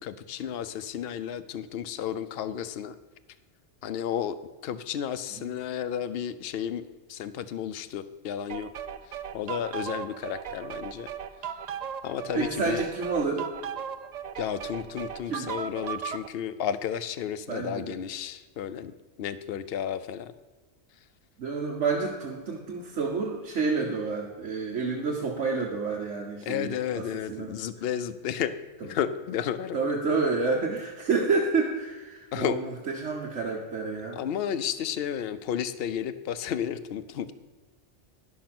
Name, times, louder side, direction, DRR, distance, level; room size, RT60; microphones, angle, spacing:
voice 1, 0.0-2.9 3.8-4.3 4.6-6.8 7.1-8.7 9.3-11.1 12.0-12.8 14.4-20.3 26.4-28.5 28.8-30.2 32.3-32.6 34.2-37.3, left 9 dB, 60° left, 13 dB, 0.8 m, -32 dB
sound 1, 8.5-16.3, right 8 dB, 55° right, 0.4 m, -37 dB
voice 2, 12.3-13.5 15.3-15.5 17.5-17.9 21.4-27.5 29.7-34.2, right 4 dB, 85° right, -2 dB, 1.4 m, -29 dB
11.0 x 6.4 x 5.9 m, 1.3 s
omnidirectional pair, 1.2 m